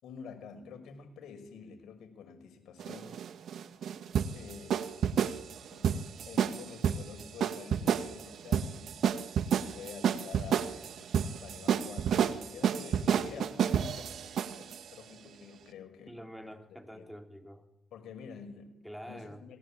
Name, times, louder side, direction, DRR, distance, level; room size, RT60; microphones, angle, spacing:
voice 1, 0.0-3.2 4.3-5.1 5.7-9.0 9.7-16.2 16.9-17.1 17.9-19.6, left 6 dB, 70° left, 5.9 m, -48 dB
sound 1, 2.8-14.8, right 8 dB, 65° right, 1.8 m, -30 dB
voice 2, 16.1-17.6 18.8-19.4, equal, ahead, 3.4 m, -46 dB
28.0 x 22.0 x 8.8 m
cardioid pair, 90°, 0 cm